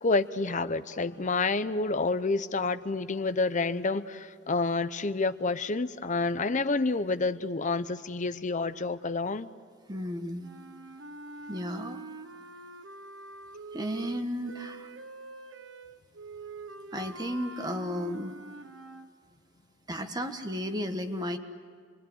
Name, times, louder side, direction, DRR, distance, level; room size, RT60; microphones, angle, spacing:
voice 1, 0.0-9.5, left 3 dB, 40° left, 12 dB, 0.8 m, -29 dB
voice 2, 9.9-10.5 11.5-12.1 13.7-14.9 16.9-18.3 19.9-21.4, equal, 20° right, 6 dB, 1.6 m, -34 dB
sound 1, 10.4-19.1, right 3 dB, 75° right, 1.3 m, -45 dB
28.0 x 22.5 x 9.5 m, 2.1 s
head